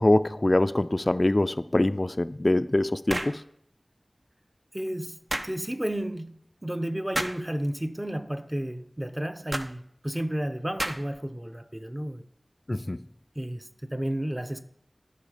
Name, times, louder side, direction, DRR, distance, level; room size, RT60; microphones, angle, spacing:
voice 1, 0.0-3.4 12.7-13.0, left 1 dB, 40° left, 0.3 m, -24 dB
sound 1, 3.1-3.4 5.3-5.5 7.1-7.4 9.5-9.7 10.8-11.2, right 1 dB, 55° right, 0.7 m, -31 dB
voice 2, 4.7-6.3 6.6-12.2 13.4-14.6, right 1 dB, 20° right, 0.7 m, -32 dB
12.5 x 5.7 x 4.9 m
wide cardioid pair, 40°, 0 cm